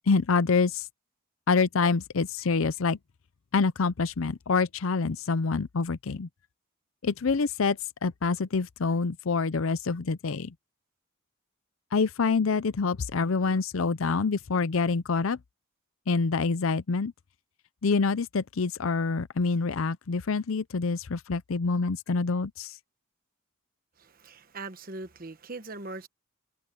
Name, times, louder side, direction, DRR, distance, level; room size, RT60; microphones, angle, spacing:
voice 1, 0.1-0.9 1.5-3.0 3.5-6.3 7.0-10.5 11.9-15.4 16.1-17.1 17.8-22.8, left 4 dB, 70° left, 0.6 m, -26 dB
voice 2, 24.0-26.1, right 3 dB, 40° right, 1.1 m, -40 dB
head